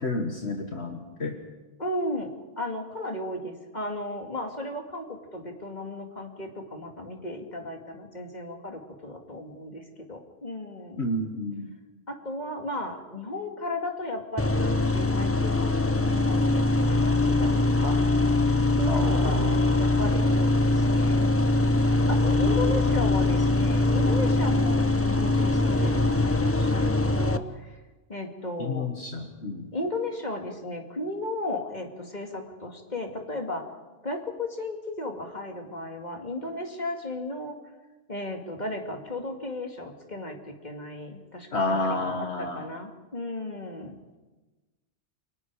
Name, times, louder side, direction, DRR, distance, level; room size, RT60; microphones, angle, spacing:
voice 1, 0.0-1.4 11.0-11.7 18.9-19.7 28.6-29.7 41.5-42.7, left 2 dB, 60° left, 3 dB, 2.0 m, -30 dB
voice 2, 1.8-11.1 12.1-18.0 18.8-19.5 19.8-21.2 22.1-27.8 28.1-28.9 29.7-33.7 34.0-37.6 38.1-44.0, left 2 dB, 35° left, 3 dB, 2.5 m, -35 dB
sound 1, 14.4-27.4, left 2 dB, 15° left, 0.6 m, -22 dB
29.5 x 24.0 x 4.9 m, 1.2 s
omnidirectional pair, 1.2 m